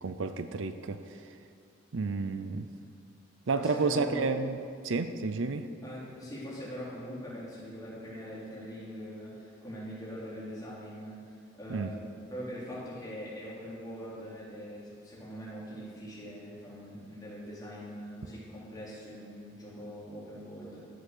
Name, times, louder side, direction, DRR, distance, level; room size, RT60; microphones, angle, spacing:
voice 1, 0.0-1.0 1.9-2.7 3.5-4.6 4.8-5.6 11.7-11.9, right 4 dB, 70° right, 10 dB, 0.6 m, -30 dB
voice 2, 3.5-4.3 5.8-20.9, equal, 20° left, -7 dB, 3.4 m, -42 dB
13.0 x 7.5 x 6.7 m, 2.3 s
head